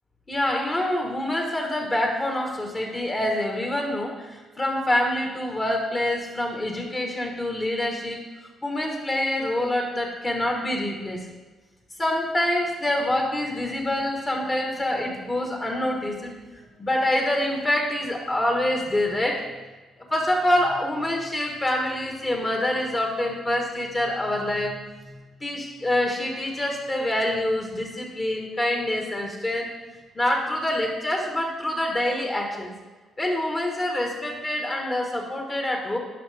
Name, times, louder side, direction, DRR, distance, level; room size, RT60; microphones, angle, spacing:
voice 1, 0.3-8.2 8.6-11.2 12.0-16.3 16.8-19.4 20.1-24.8 25.4-29.7 30.1-32.7 33.2-36.0, left 1 dB, 30° left, 1 dB, 1.5 m, -26 dB
11.5 x 5.1 x 3.5 m, 1.2 s
cardioid pair, 90°, 0 cm